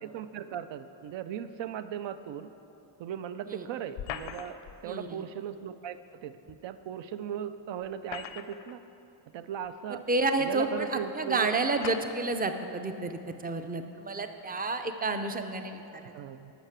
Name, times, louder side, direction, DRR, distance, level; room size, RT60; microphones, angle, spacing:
voice 1, 0.0-2.5 3.0-8.8 9.3-10.1 10.4-11.5 16.1-16.5, right 9 dB, 80° right, 11 dB, 0.6 m, -38 dB
sound 1, 4.0-4.8 6.5-6.6 7.8-8.8 9.6-9.7 10.7-10.8 11.8-12.3, left 9 dB, 90° left, 0.7 m, -40 dB
voice 2, 4.8-5.2 9.9-16.1, right 3 dB, 20° right, 7 dB, 0.4 m, -30 dB
12.0 x 5.8 x 7.4 m, 2.8 s
wide cardioid pair, 170°, 44 cm